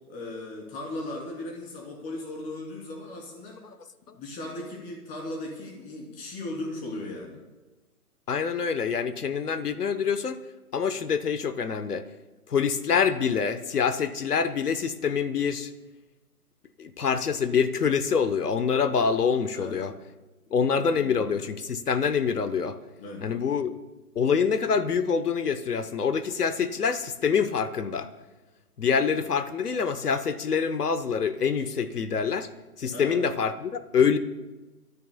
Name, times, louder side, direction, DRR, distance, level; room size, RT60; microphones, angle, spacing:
voice 1, 0.1-3.6 4.1-7.4 19.5-19.8 20.7-21.2 23.0-23.2 32.9-33.2, left 2 dB, 15° left, -1 dB, 3.1 m, -37 dB
voice 2, 8.3-10.4 10.7-12.0 12.5-15.7 16.8-19.9 20.5-22.8 23.2-23.7 24.1-28.1 28.8-32.5 32.8-34.2, left 6 dB, 85° left, 11 dB, 1.0 m, -25 dB
29.0 x 13.5 x 2.2 m, 1.1 s
hypercardioid pair, 145°, 45 cm